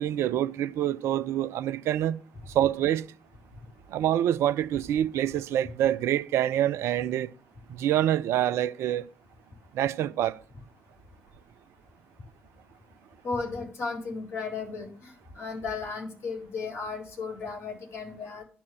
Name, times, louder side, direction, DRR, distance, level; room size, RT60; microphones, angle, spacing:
voice 1, 0.0-2.2 2.5-3.0 3.9-7.3 7.8-9.1 9.7-10.4, right 11 dB, 60° right, 0.5 m, -26 dB
voice 2, 13.2-18.4, left 4 dB, 55° left, 4.0 m, -35 dB
11.0 x 4.4 x 7.7 m
figure-of-eight pair, 40°, 5 cm